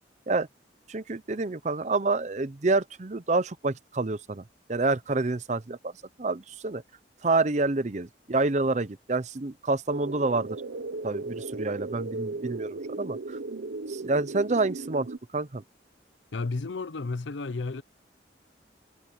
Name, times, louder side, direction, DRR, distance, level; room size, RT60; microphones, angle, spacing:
voice 1, 0.9-4.4 4.7-5.9 6.2-6.8 7.2-10.6 11.0-13.4 13.9-15.1 15.3-15.6, right 3 dB, 40° right, 0.7 m, -28 dB
sound 1, 9.9-15.2, right 3 dB, 80° right, 0.7 m, -36 dB
voice 2, 16.3-17.8, left 3 dB, 85° left, 0.7 m, -32 dB
head